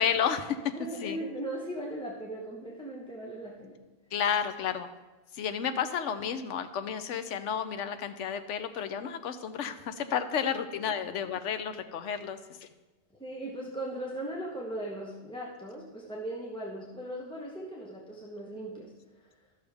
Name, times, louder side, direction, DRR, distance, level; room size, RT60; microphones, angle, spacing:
voice 1, 0.0-0.7 1.0-1.2 4.1-4.9 5.3-12.7, left 8 dB, 85° left, 10 dB, 1.0 m, -31 dB
voice 2, 0.7-3.8 5.7-5.8 10.4-10.5 10.8-10.9 13.2-18.9 19.2-19.3, right 1 dB, 5° left, -3 dB, 0.9 m, -38 dB
13.0 x 6.5 x 3.5 m, 1.1 s
omnidirectional pair, 1.2 m